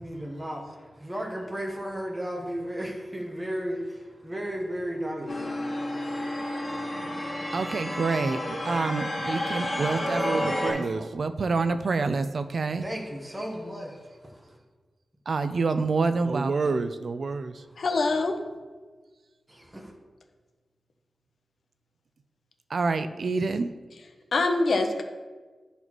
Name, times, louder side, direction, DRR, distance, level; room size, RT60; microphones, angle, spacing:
voice 1, 0.0-7.5 12.8-14.6 19.5-19.9, equal, 10° right, 0 dB, 1.1 m, -35 dB
sound 1, 5.3-10.7, left 1 dB, 25° left, 1.4 m, -31 dB
voice 2, 7.5-12.8 15.3-17.6 22.7-23.7, right 4 dB, 60° right, 10 dB, 0.4 m, -27 dB
voice 3, 17.8-18.4 24.3-25.0, left 3 dB, 75° left, 4 dB, 0.6 m, -24 dB
11.0 x 4.0 x 3.0 m, 1.3 s
wide cardioid pair, 110°, 0 cm